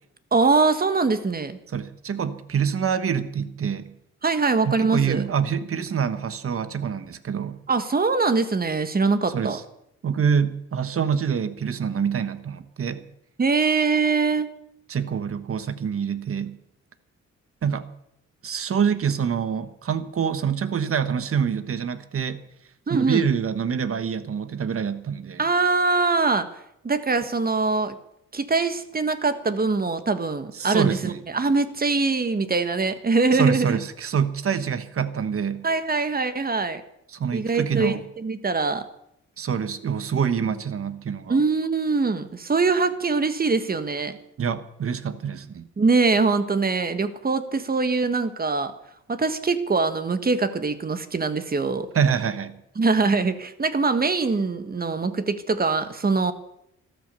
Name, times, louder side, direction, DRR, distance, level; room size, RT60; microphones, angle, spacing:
voice 1, 0.3-1.6 4.2-5.3 7.7-9.6 13.4-14.5 22.9-23.3 25.4-26.5 26.8-28.0 28.3-33.8 35.6-36.8 37.3-38.8 41.3-44.2 45.8-48.7 49.1-51.9 52.8-56.3, right 4 dB, 30° right, 10 dB, 1.5 m, -23 dB
voice 2, 1.7-3.9 4.6-7.6 9.3-9.6 10.0-13.0 14.9-16.6 17.6-17.9 18.4-22.4 22.9-25.4 30.5-31.2 33.3-35.7 37.1-38.0 39.4-41.4 44.4-45.7 51.9-52.6, right 7 dB, 50° right, 12 dB, 1.3 m, -26 dB
13.5 x 13.0 x 6.9 m, 0.76 s
cardioid pair, 95°, 29 cm